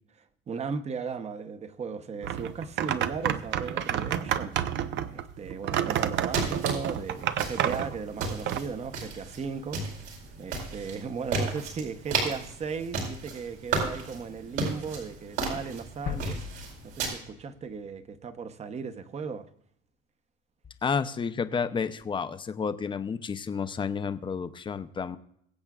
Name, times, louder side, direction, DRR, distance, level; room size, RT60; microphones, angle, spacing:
voice 1, 0.5-4.6 5.1-9.8 10.4-16.4 16.8-19.4, right 5 dB, 30° right, 0.9 m, -36 dB
sound 1, 2.2-8.6, right 10 dB, 60° right, 0.8 m, -29 dB
sound 2, 5.9-17.1, right 4 dB, 85° right, 4.5 m, -34 dB
sound 3, 16.1-17.9, left 8 dB, 50° left, 0.9 m, -39 dB
voice 2, 20.8-25.2, left 6 dB, 25° left, 0.7 m, -31 dB
22.5 x 7.9 x 2.4 m
cardioid pair, 120°, 21 cm